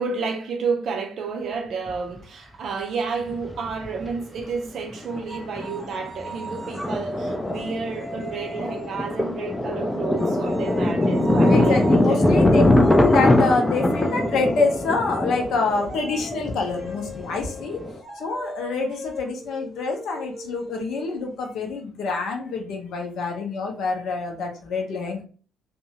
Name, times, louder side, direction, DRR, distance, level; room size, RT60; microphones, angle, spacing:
voice 1, 0.0-12.2, right 5 dB, 50° right, 0.5 m, -31 dB
Thunder, 1.9-2.0 3.3-4.1 4.4-4.5 4.9-5.2 5.6-18.0, left 1 dB, 15° left, 0.4 m, -22 dB
sound 1, 5.3-9.2 10.2-21.5, right 1 dB, 5° right, 0.7 m, -37 dB
voice 2, 11.5-17.8 18.2-25.2, left 4 dB, 55° left, 0.6 m, -26 dB
2.6 x 2.1 x 2.8 m
figure-of-eight pair, 45°, 0 cm